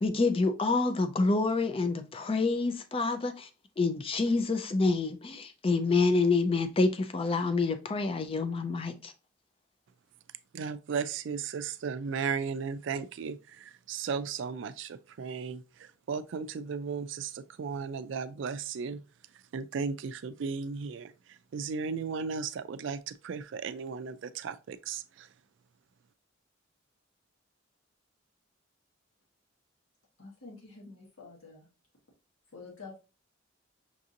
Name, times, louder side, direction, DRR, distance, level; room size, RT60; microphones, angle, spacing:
voice 1, 0.0-3.5 3.8-9.1, left 3 dB, 30° left, 0.5 m, -27 dB
voice 2, 10.5-19.0 19.5-25.3, right 5 dB, 65° right, 0.3 m, -35 dB
voice 3, 30.2-31.7 32.5-33.0, left 4 dB, 85° left, 1.5 m, -48 dB
5.9 x 2.5 x 2.7 m
head